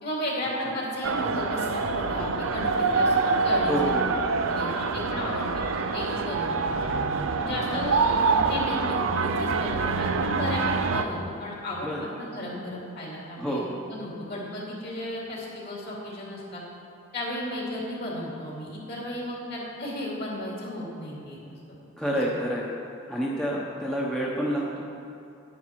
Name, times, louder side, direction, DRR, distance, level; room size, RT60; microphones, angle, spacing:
voice 1, 0.0-4.1 4.4-6.9 7.4-16.6 17.1-21.4 21.7-21.8 22.3-22.4, left 1 dB, 50° left, -4 dB, 2.7 m, -34 dB
sound 1, 1.0-11.0, right 4 dB, 70° right, 0.6 m, -26 dB
voice 2, 3.7-4.1 11.8-12.0 13.4-13.7 22.0-22.7 23.1-24.8, equal, 5° left, -5 dB, 1.0 m, -28 dB
10.5 x 10.0 x 4.7 m, 2.7 s
head